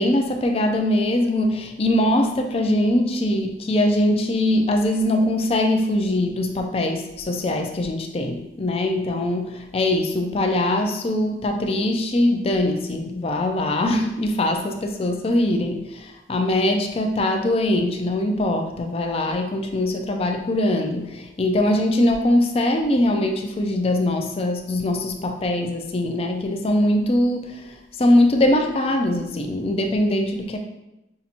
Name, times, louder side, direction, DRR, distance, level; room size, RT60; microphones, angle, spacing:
voice 1, 0.0-30.6, left 1 dB, 35° left, 5 dB, 0.4 m, -22 dB
5.5 x 2.5 x 2.8 m, 0.90 s
head